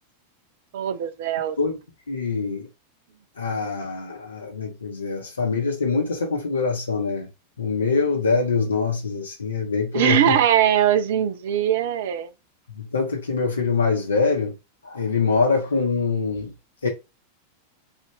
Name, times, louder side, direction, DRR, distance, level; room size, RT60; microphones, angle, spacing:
voice 1, 0.7-1.6 9.9-12.3, right 10 dB, 55° right, 0.6 m, -21 dB
voice 2, 2.1-2.7 3.4-7.3 7.6-10.4 12.7-14.5 14.8-16.5 16.8-16.9, left 4 dB, 75° left, 1.2 m, -24 dB
4.8 x 2.7 x 3.4 m
figure-of-eight pair, 90°, 0 cm